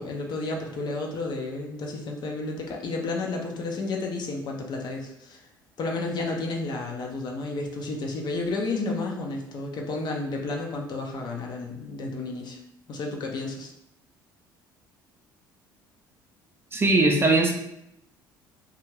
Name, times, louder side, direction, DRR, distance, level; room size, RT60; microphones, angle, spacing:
voice 1, 0.0-5.4 5.8-12.6 12.9-13.7, left 3 dB, 40° left, 1 dB, 0.6 m, -31 dB
voice 2, 16.7-17.5, right 2 dB, 20° right, 1 dB, 0.5 m, -20 dB
2.5 x 2.3 x 3.1 m, 0.79 s
figure-of-eight pair, 55°, 11 cm